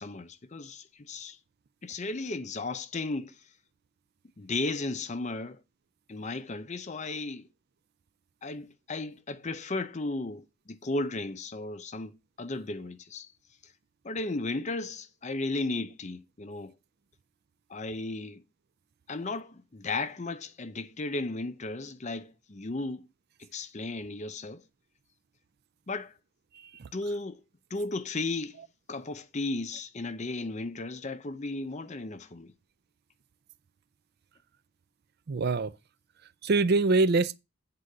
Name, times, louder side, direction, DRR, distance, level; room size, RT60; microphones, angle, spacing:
voice 1, 0.0-1.4 1.8-3.4 4.4-5.6 6.1-7.5 8.4-13.3 13.6-13.7 14.0-16.7 17.7-18.4 19.1-23.1 23.4-24.6 25.9-26.1 26.9-27.4 27.7-28.6 28.9-32.5, left 2 dB, 30° left, 0.6 m, -35 dB
voice 2, 26.5-26.9 35.3-35.7 36.4-37.4, right 3 dB, 45° right, 0.4 m, -25 dB
9.6 x 3.8 x 6.5 m
head